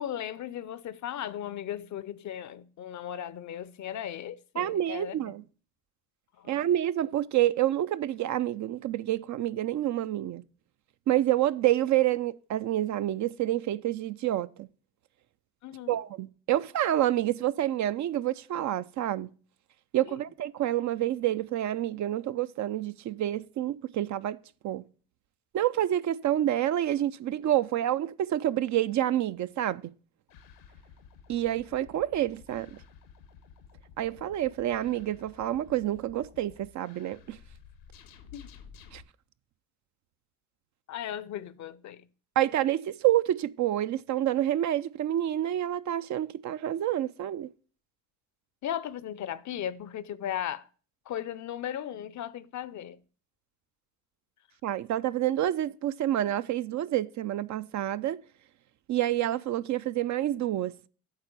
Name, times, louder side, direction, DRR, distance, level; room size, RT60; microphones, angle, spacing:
voice 1, 0.0-5.4 6.3-6.7 15.6-16.0 20.1-20.2 38.3-38.5 40.9-42.1 48.6-50.7 51.1-53.0, left 10 dB, 45° left, 0.6 m, -37 dB
voice 2, 4.6-5.4 6.5-10.4 11.1-14.7 15.9-19.3 19.9-24.4 24.6-24.8 25.5-29.8 31.3-32.8 34.0-37.4 38.9-39.0 42.4-47.5 54.6-58.2 58.9-60.8, right 13 dB, 45° right, 0.4 m, -28 dB
sound 1, 30.3-39.0, left 6 dB, 85° left, 1.1 m, -53 dB
8.8 x 4.0 x 6.7 m
hypercardioid pair, 60°, 40 cm